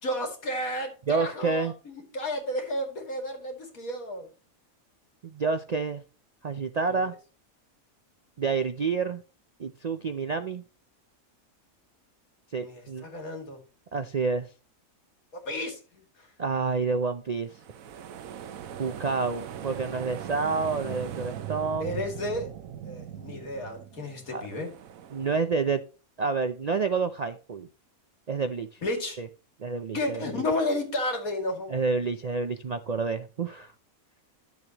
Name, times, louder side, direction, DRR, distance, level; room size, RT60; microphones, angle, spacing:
voice 1, 0.0-4.3 6.9-7.1 12.6-13.6 15.3-16.3 21.8-22.5 22.8-24.7 28.8-29.2 29.9-31.8, left 1 dB, 90° left, 2.8 m, -32 dB
voice 2, 1.1-1.7 5.2-6.0 6.4-7.1 8.4-9.2 9.6-10.6 12.5-13.0 13.9-14.5 16.4-17.6 18.8-22.0 24.3-24.5 25.1-25.8 26.2-27.7 28.3-28.8 29.2-29.3 29.6-30.2 31.7-33.7, right 4 dB, 60° right, 0.4 m, -29 dB
sound 1, 17.5-25.4, right 9 dB, 75° right, 1.2 m, -40 dB
11.5 x 7.3 x 2.9 m
omnidirectional pair, 1.4 m